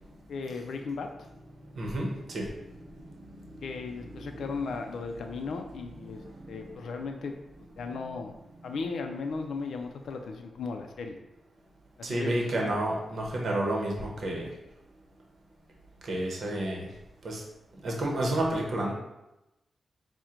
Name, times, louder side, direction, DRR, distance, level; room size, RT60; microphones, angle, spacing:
voice 1, 0.3-1.3 3.6-6.2 6.5-7.3 7.8-8.3 8.6-11.2 12.0-12.7, left 4 dB, 85° left, 4 dB, 0.4 m, -36 dB
voice 2, 1.7-4.6 5.0-5.5 5.8-6.8 8.5-8.8 12.0-14.5 16.0-16.9 17.2-17.4 17.8-18.9, right 1 dB, 60° right, -1 dB, 0.8 m, -32 dB
4.3 x 2.1 x 3.7 m, 0.93 s
wide cardioid pair, 125°, 0 cm